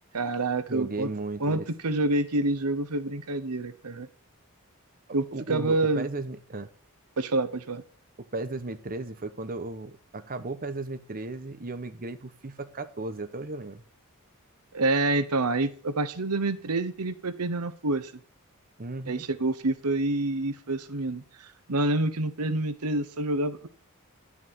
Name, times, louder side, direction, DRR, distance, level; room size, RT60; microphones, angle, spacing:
voice 1, 0.1-1.1 1.4-4.1 5.1-6.1 7.2-7.8 14.7-18.1 19.1-23.7, right 2 dB, 90° right, 1.0 m, -27 dB
voice 2, 0.7-1.7 5.3-6.7 8.2-13.8 18.8-19.2, right 2 dB, 40° right, 1.0 m, -35 dB
11.5 x 6.3 x 7.1 m
head